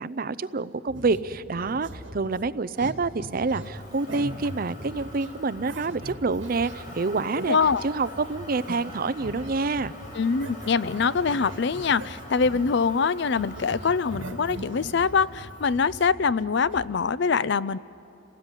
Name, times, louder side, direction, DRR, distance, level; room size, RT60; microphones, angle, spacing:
voice 1, 0.0-7.6 7.8-9.9, right 3 dB, 50° right, 15 dB, 0.6 m, -27 dB
sound 1, 0.9-12.9 13.2-16.8, right 1 dB, 85° right, 2.1 m, -41 dB
Motor vehicle (road), 3.3-15.8, left 1 dB, 45° left, 5.5 m, -45 dB
voice 2, 7.5-7.8 10.1-17.8, left 5 dB, 60° left, 18 dB, 0.5 m, -24 dB
29.0 x 18.5 x 9.9 m, 2.9 s
head